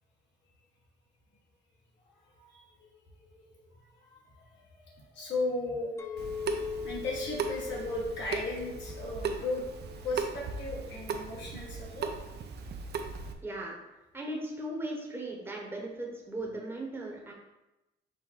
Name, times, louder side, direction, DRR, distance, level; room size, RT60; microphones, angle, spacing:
voice 1, 2.1-2.9 3.2-12.1, left 2 dB, 65° left, -4 dB, 1.6 m, -37 dB
Chink clink, 6.0-10.3 10.8-11.2, left 6 dB, 15° left, 0.3 m, -42 dB
Water tap faucet / Sink (filling or washing) / Drip, 6.2-13.3, right 5 dB, 55° right, 0.6 m, -38 dB
voice 2, 13.4-13.8 14.1-17.3, right 1 dB, 10° right, -2 dB, 1.0 m, -37 dB
5.3 x 2.1 x 4.6 m, 0.98 s
cardioid pair, 90°, 20 cm